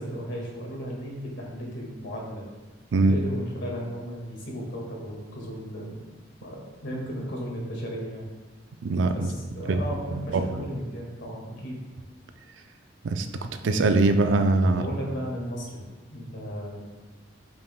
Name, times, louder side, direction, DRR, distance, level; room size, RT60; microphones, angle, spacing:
voice 1, 0.0-2.4 2.9-6.1 6.4-8.3 9.1-11.8 14.8-15.8 16.1-16.8, equal, 75° left, -3 dB, 1.9 m, -35 dB
voice 2, 8.8-9.3 9.7-9.8 10.1-10.6 13.0-13.3 13.6-14.9, right 3 dB, 90° right, 7 dB, 0.4 m, -22 dB
8.0 x 5.4 x 2.2 m, 1.3 s
head